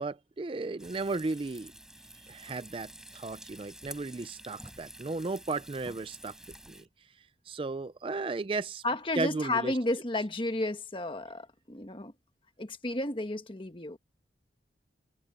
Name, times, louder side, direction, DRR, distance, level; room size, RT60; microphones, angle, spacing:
voice 1, 0.0-1.7 2.3-6.3 6.7-6.8 7.5-8.8 9.2-9.8, right 3 dB, 30° right, 0.4 m, -35 dB
Frying (food), 0.8-6.8, right 1 dB, 5° right, 7.9 m, -49 dB
voice 2, 8.8-12.1 12.6-14.0, left 1 dB, 30° left, 1.4 m, -32 dB
head